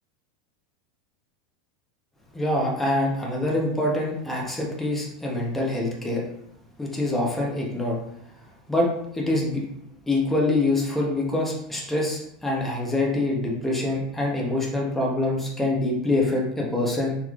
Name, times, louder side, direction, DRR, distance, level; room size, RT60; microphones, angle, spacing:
voice 1, 2.3-6.2 6.8-8.0 8.7-8.9 9.1-9.6 10.1-17.2, left 2 dB, 5° left, -2 dB, 0.6 m, -25 dB
3.8 x 3.0 x 2.3 m, 0.75 s
supercardioid pair, 160°, 4 cm